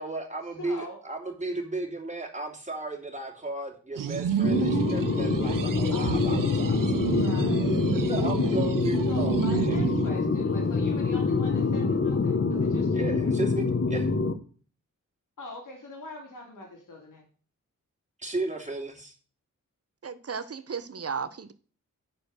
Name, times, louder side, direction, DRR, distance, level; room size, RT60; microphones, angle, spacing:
voice 1, 0.0-6.8 8.1-9.7 12.9-14.1 18.2-19.1, right 2 dB, 20° right, 2.8 m, -34 dB
voice 2, 0.6-1.0 5.9-6.8 7.1-8.5 9.1-13.2 15.4-17.2, left 2 dB, 75° left, 3.0 m, -43 dB
sound 1, 4.0-10.1, right 9 dB, 90° right, 0.7 m, -30 dB
sound 2, 4.4-14.3, left 4 dB, 40° left, 1.2 m, -25 dB
voice 3, 20.0-21.5, right 6 dB, 50° right, 0.9 m, -34 dB
10.0 x 4.6 x 6.6 m
cardioid pair, 70°, 31 cm